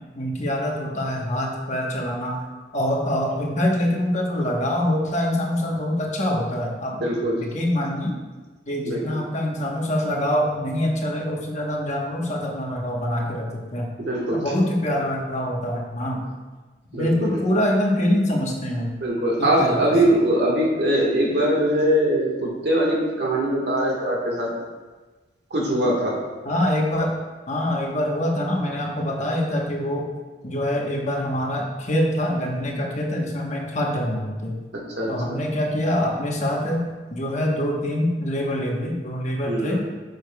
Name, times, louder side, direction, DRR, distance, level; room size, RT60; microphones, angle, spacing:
voice 1, 0.1-2.4 2.7-7.0 7.3-8.2 8.7-13.9 14.3-16.3 16.9-18.9 19.4-19.8 26.4-27.2 27.5-30.1 30.4-34.6 35.1-39.8, left 1 dB, 40° left, -1 dB, 1.1 m, -25 dB
voice 2, 7.0-7.4 8.9-9.1 14.0-14.6 16.9-17.4 19.0-24.5 25.5-26.2 34.7-35.4 39.4-39.9, right 1 dB, 70° right, -2 dB, 1.5 m, -22 dB
9.7 x 6.5 x 2.3 m, 1.3 s
head